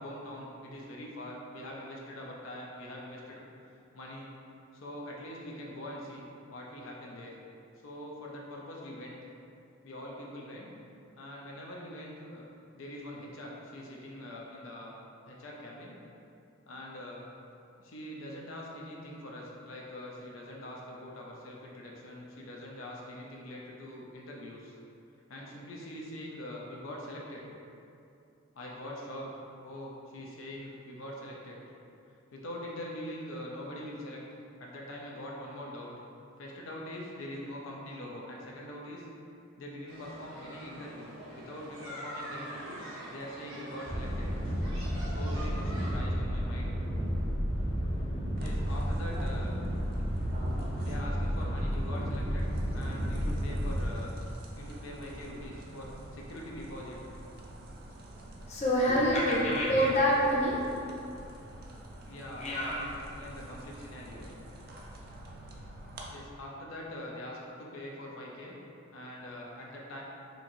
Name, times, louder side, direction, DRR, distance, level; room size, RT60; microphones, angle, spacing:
voice 1, 0.0-3.4 3.9-4.3 4.7-6.2 6.5-7.3 7.8-9.2 9.8-10.7 11.2-12.4 12.7-14.9 15.3-16.0 16.7-17.3 17.8-24.8 25.3-27.5 28.5-29.3 29.6-31.6 32.3-34.2 34.6-35.9 36.4-39.1 39.6-42.8 43.1-44.3 45.1-46.7 48.4-49.6 50.8-54.1 54.6-57.0 58.8-59.6 62.0-64.3 66.1-68.6 68.9-70.0, left 1 dB, 80° left, -3 dB, 0.5 m, -43 dB
sound 1, 39.9-46.0, right 1 dB, 75° right, 0.9 m, -45 dB
sound 2, 43.9-53.9, equal, 55° left, 1.1 m, -32 dB
sound 3, 48.4-66.1, right 1 dB, 50° right, 0.4 m, -47 dB
voice 2, 58.5-60.9 62.4-62.9, equal, 35° left, -5 dB, 0.5 m, -26 dB
4.4 x 2.6 x 2.6 m, 2.7 s
head